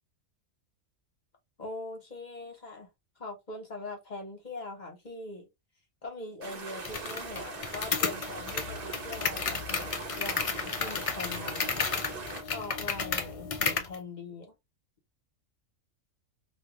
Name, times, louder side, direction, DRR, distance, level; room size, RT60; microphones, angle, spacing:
voice 1, 1.6-2.9 3.2-5.5 6.0-11.7 12.4-14.5, left 2 dB, 35° left, 1.2 m, -42 dB
sound 1, 6.4-12.4, right 4 dB, 45° right, 1.0 m, -41 dB
sound 2, 6.9-14.0, left 5 dB, 65° left, 0.3 m, -33 dB
2.9 x 2.4 x 3.1 m
omnidirectional pair, 1.4 m